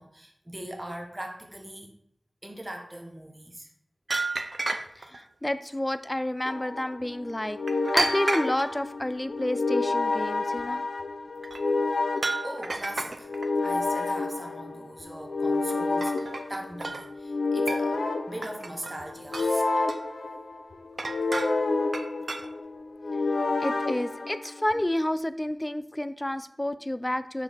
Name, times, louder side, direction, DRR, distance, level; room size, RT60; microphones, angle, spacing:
voice 1, 0.0-1.9 2.4-3.7 12.4-13.3 13.6-18.0 18.3-19.6, right 1 dB, 25° right, 2 dB, 0.9 m, -40 dB
sound 1, 4.1-5.2 7.7-8.7 11.4-11.6 12.2-13.5 15.5-15.7 16.0-17.1 17.7-18.1 18.4-19.1 19.3-20.0 21.0-21.6 21.9-22.5, right 3 dB, 65° right, 0.5 m, -31 dB
voice 2, 5.0-7.6 7.9-10.8 23.6-27.4, left 1 dB, 20° left, 13 dB, 0.3 m, -30 dB
sound 2, 6.4-24.8, left 3 dB, 90° left, 0.5 m, -30 dB
5.8 x 4.6 x 3.5 m, 0.71 s
wide cardioid pair, 60°, 0 cm